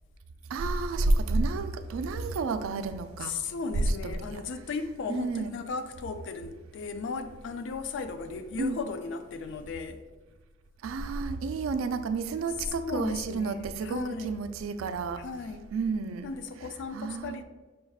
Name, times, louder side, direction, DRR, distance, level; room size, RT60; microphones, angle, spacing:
voice 1, 0.5-3.3 3.7-4.4 5.1-5.5 8.6-8.8 10.8-15.2 15.7-16.3 16.9-17.4, right 3 dB, 90° right, 0.3 m, -30 dB
voice 2, 3.2-10.0 12.8-14.4 15.2-15.7 16.2-17.4, left 4 dB, 65° left, 0.3 m, -36 dB
5.2 x 2.3 x 3.4 m
head